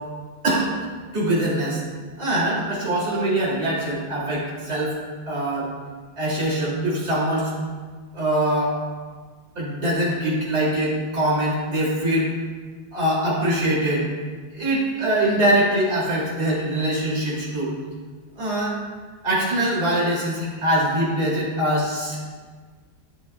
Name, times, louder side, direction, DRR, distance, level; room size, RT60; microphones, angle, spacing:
voice 1, 1.1-1.8 2.2-4.9 5.3-5.7 6.2-7.5 8.1-8.7 9.5-12.3 12.9-14.1 14.5-17.7 18.4-18.8 19.2-22.2, right 1 dB, 35° right, -6 dB, 3.0 m, -23 dB
12.0 x 7.3 x 2.3 m, 1.5 s
omnidirectional pair, 2.1 m